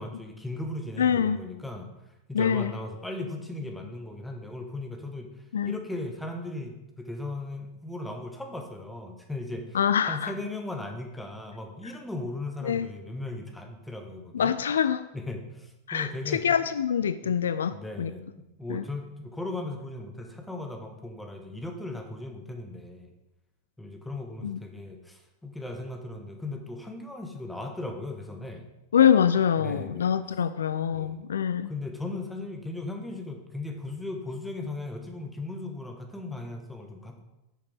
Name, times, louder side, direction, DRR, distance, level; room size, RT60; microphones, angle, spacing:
voice 1, 0.0-1.9 2.3-9.8 10.0-14.5 15.1-16.5 17.2-17.4 17.7-18.2 18.6-23.1 23.8-28.6 29.6-30.1 30.9-31.2 31.6-37.2, left 2 dB, 5° left, 4 dB, 1.3 m, -37 dB
voice 2, 1.0-1.4 2.3-2.7 5.5-5.8 9.7-10.3 12.6-12.9 14.3-15.1 15.9-18.1 18.7-18.8 24.4-24.6 28.9-31.7, left 8 dB, 70° left, 13 dB, 0.3 m, -25 dB
9.8 x 6.7 x 3.5 m, 0.95 s
figure-of-eight pair, 90°, 0 cm